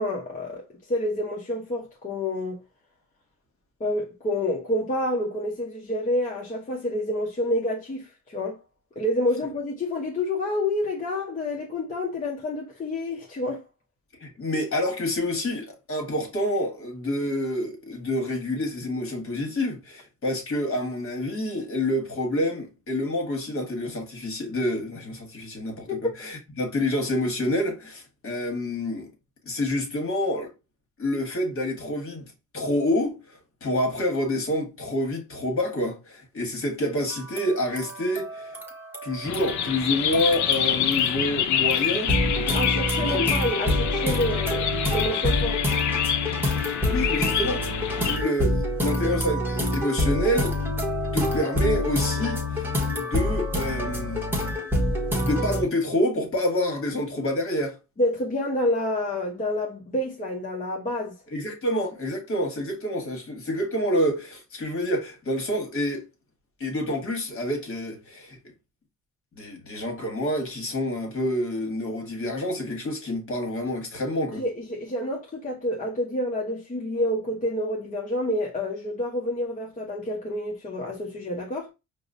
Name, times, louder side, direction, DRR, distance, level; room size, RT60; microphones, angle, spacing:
voice 1, 0.0-2.6 3.8-8.6 9.0-13.6 25.9-26.0 42.5-45.6 58.0-61.2 74.3-81.7, left 1 dB, 25° left, 0.8 m, -28 dB
voice 2, 14.2-25.9 26.2-29.1 29.4-30.5 31.0-38.6 39.0-42.1 42.9-43.3 46.6-47.7 47.9-50.6 51.1-54.2 55.2-57.8 61.3-66.1 66.6-68.4 69.4-74.4, left 1 dB, 45° left, 1.4 m, -28 dB
sound 1, 37.1-39.8 40.1-41.4 41.7-55.6, left 1 dB, 5° right, 1.1 m, -27 dB
sound 2, 39.2-48.2, left 9 dB, 70° left, 0.6 m, -27 dB
4.7 x 2.1 x 2.5 m
cardioid pair, 90°, 30 cm